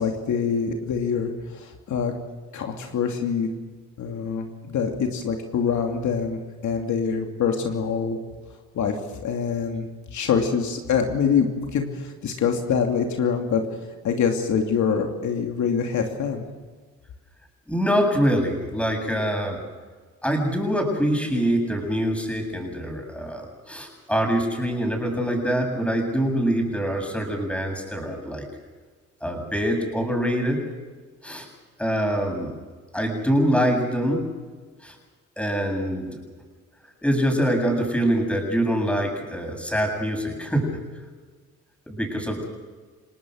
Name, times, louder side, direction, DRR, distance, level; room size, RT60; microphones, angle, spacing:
voice 1, 0.0-2.1 2.5-3.5 4.0-8.2 8.7-9.0 9.2-13.6 14.0-16.5, left 6 dB, 70° left, 3 dB, 2.7 m, -25 dB
voice 2, 17.7-19.6 20.2-28.5 29.2-30.6 31.2-31.5 31.8-32.6 32.9-34.3 34.8-35.0 35.4-36.2 37.0-40.8 41.9-42.5, equal, 5° left, 3 dB, 7.4 m, -24 dB
30.0 x 18.5 x 6.4 m, 1.4 s
cardioid pair, 90°, 30 cm